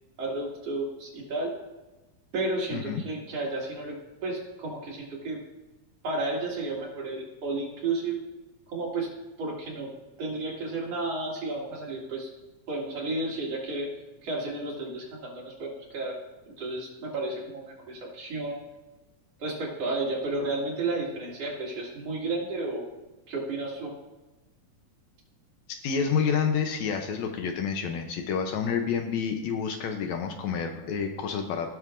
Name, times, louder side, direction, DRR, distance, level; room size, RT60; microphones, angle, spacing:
voice 1, 0.2-1.5 2.3-3.9 4.2-5.4 6.0-8.2 8.7-9.1 9.4-9.9 10.2-12.3 12.7-13.9 14.2-16.1 16.6-18.6 19.4-22.9 23.3-23.9, right 2 dB, 55° right, -4 dB, 3.2 m, -32 dB
voice 2, 2.7-3.0 25.8-31.7, left 6 dB, 75° left, 5 dB, 1.9 m, -29 dB
17.0 x 6.4 x 2.5 m, 1.1 s
omnidirectional pair, 3.4 m